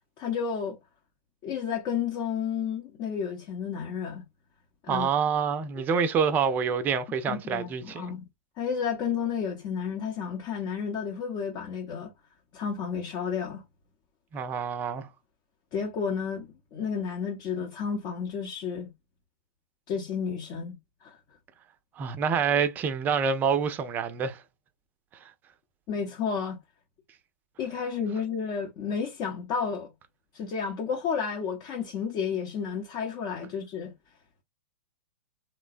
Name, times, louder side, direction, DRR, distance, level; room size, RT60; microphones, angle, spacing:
voice 1, 0.2-0.8 1.4-4.2 4.8-5.1 7.3-8.3 8.6-12.1 12.5-13.6 15.7-18.9 19.9-20.8 21.0-21.2 25.9-26.6 27.6-29.9 30.3-33.9, left 6 dB, 35° left, 0.7 m, -31 dB
voice 2, 4.9-8.1 14.3-15.1 22.0-24.4, right 6 dB, 25° right, 0.5 m, -27 dB
3.1 x 2.1 x 2.5 m
figure-of-eight pair, 105°, 8 cm